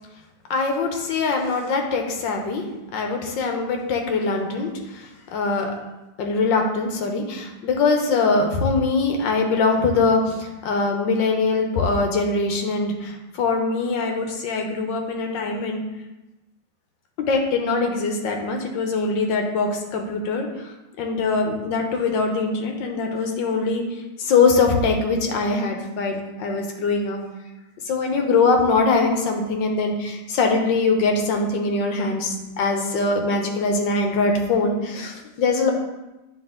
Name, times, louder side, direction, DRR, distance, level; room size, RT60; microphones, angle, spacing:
voice 1, 0.5-2.6 2.9-5.7 6.2-15.8 17.2-20.5 21.0-23.8 24.2-27.2 27.9-35.7, left 4 dB, 85° left, 3 dB, 1.6 m, -22 dB
9.5 x 3.4 x 3.7 m, 1.0 s
omnidirectional pair, 2.0 m